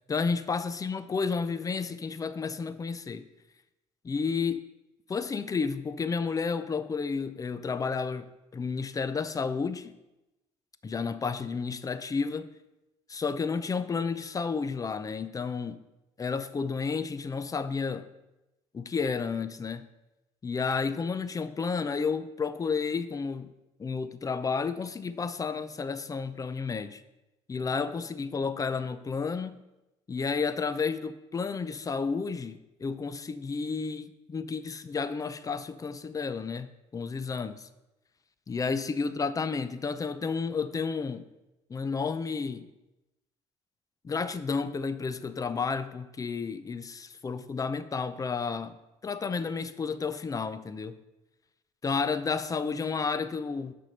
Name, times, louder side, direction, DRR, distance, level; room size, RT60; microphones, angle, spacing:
voice 1, 0.1-3.2 4.0-4.6 5.1-8.3 8.5-9.9 10.8-12.5 13.1-15.8 16.2-18.1 18.7-19.8 20.4-23.5 23.8-27.0 27.5-29.6 30.1-37.6 38.5-41.2 41.7-42.6 44.0-48.7 49.0-50.9 51.8-53.7, left 5 dB, 25° left, 0.5 m, -31 dB
6.1 x 4.4 x 6.5 m
supercardioid pair, 75°, 14 cm